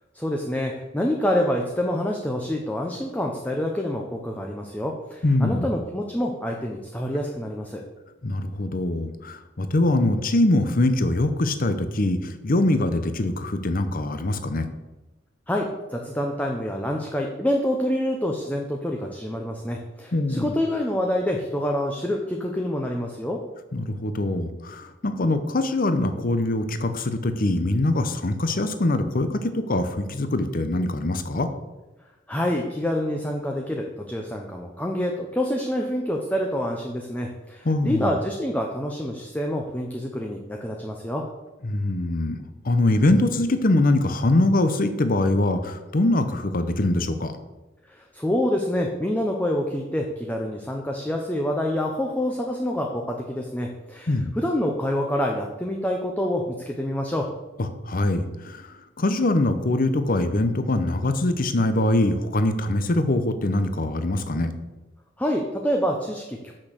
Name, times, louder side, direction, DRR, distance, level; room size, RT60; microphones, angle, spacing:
voice 1, 0.1-7.8 15.5-23.4 32.3-41.2 47.9-57.3 65.2-66.5, left 1 dB, 10° left, 1 dB, 0.7 m, -27 dB
voice 2, 5.2-5.7 8.2-14.7 20.1-20.5 23.7-31.5 37.6-38.1 41.6-47.3 54.1-54.3 57.6-64.5, left 2 dB, 50° left, 9 dB, 0.8 m, -23 dB
6.3 x 6.2 x 6.4 m, 1.1 s
head